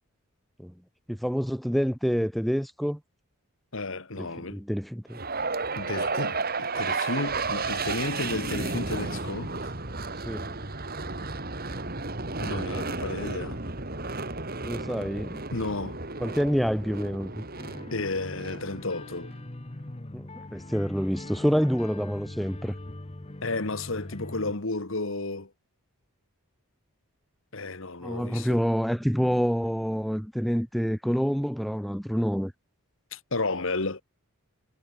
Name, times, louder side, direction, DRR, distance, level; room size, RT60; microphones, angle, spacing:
voice 1, 1.1-3.0 4.2-5.2 10.2-10.6 14.6-15.4 16.2-17.4 20.1-22.7 28.0-32.5, equal, ahead, 1.3 m, -27 dB
voice 2, 3.7-4.6 5.7-9.7 12.4-13.6 15.5-16.0 17.9-19.3 23.4-25.5 27.5-28.6 33.1-34.0, left 2 dB, 60° left, 1.7 m, -32 dB
sound 1, 5.1-19.3, right 3 dB, 40° right, 2.9 m, -33 dB
sound 2, 17.6-24.5, left 1 dB, 25° left, 1.0 m, -42 dB
head